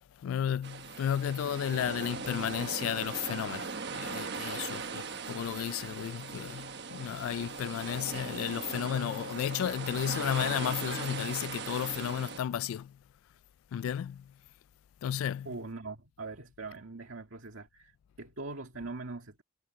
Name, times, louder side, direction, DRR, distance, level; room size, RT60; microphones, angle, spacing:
voice 1, 0.1-13.0 13.7-14.3 15.0-15.5, left 9 dB, 90° left, 0.3 m, -33 dB
sound 1, 0.6-12.4, right 5 dB, 55° right, 1.3 m, -39 dB
Bell, 10.9-12.5, left 5 dB, 55° left, 6.4 m, -51 dB
voice 2, 15.5-19.4, right 3 dB, 80° right, 1.9 m, -42 dB
head